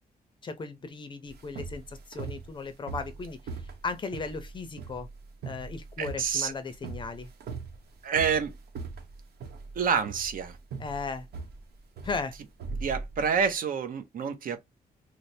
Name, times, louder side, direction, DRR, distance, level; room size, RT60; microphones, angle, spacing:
voice 1, 0.4-3.4 3.8-5.1 5.4-7.3 10.8-11.3 12.0-12.4, left 4 dB, 30° left, 0.5 m, -36 dB
sound 1, 1.3-13.5, right 4 dB, 80° right, 1.0 m, -40 dB
voice 2, 6.0-6.5 8.0-8.5 9.7-10.6 12.8-14.6, right 6 dB, 60° right, 0.7 m, -28 dB
3.2 x 2.1 x 4.1 m
wide cardioid pair, 175°, 16 cm